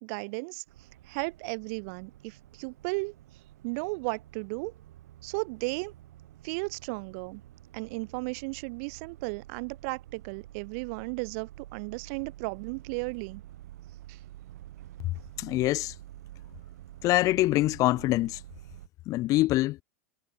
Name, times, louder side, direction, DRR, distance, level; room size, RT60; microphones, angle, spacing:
voice 1, 0.0-0.6 1.1-3.1 3.6-4.7 5.2-5.9 6.4-7.4 7.7-13.4 14.1-14.2, right 33 dB, 60° right, 0.9 m, -35 dB
sound 1, 0.7-18.9, right 14 dB, 75° right, 4.7 m, -49 dB
voice 2, 15.4-15.9 17.0-18.4 19.1-19.8, left 17 dB, 40° left, 0.5 m, -24 dB
hypercardioid pair, 110°, 9 cm